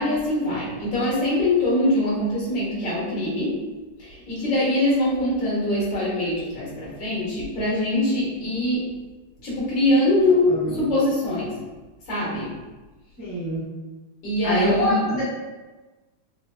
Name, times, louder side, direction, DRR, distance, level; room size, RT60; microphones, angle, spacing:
voice 1, 0.0-3.6 4.0-8.9 9.4-11.6 12.1-12.5 14.2-15.0, left 1 dB, 70° left, -7 dB, 2.0 m, -23 dB
voice 2, 10.5-10.8 13.2-13.6 14.4-15.2, equal, 45° left, -9 dB, 1.3 m, -25 dB
4.6 x 2.7 x 2.2 m, 1.2 s
omnidirectional pair, 2.1 m